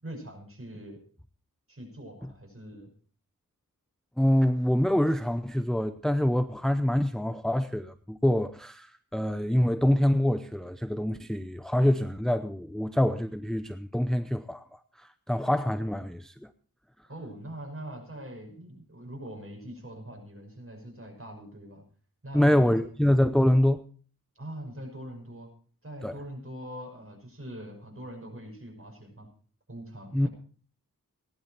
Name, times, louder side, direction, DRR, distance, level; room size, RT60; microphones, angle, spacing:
voice 1, 0.0-1.0 1.7-2.9 17.1-21.8 22.2-22.7 24.4-25.5 25.8-29.3 29.7-30.3, right 1 dB, 40° right, 5.8 m, -42 dB
voice 2, 4.2-16.5 22.3-23.8 26.0-26.2 30.1-30.3, left 1 dB, ahead, 0.6 m, -25 dB
17.0 x 11.0 x 4.4 m
wide cardioid pair, 50°, 35 cm